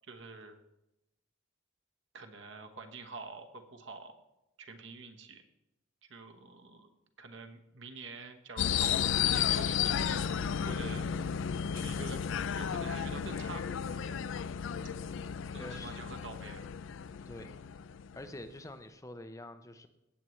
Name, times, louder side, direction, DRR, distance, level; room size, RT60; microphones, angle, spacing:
voice 1, 0.1-0.6 2.1-4.1 4.6-5.4 6.1-6.9 7.2-10.4 10.7-11.0 11.7-12.2 12.6-13.7 14.1-14.2 15.2-16.6, right 3 dB, 60° right, 6 dB, 1.1 m, -46 dB
sound 1, 8.6-18.5, left 8 dB, 65° left, 0.4 m, -33 dB
voice 2, 15.5-16.0 17.3-17.5 18.1-19.9, left 1 dB, 15° left, 9 dB, 0.6 m, -46 dB
17.0 x 8.3 x 3.2 m, 0.91 s
head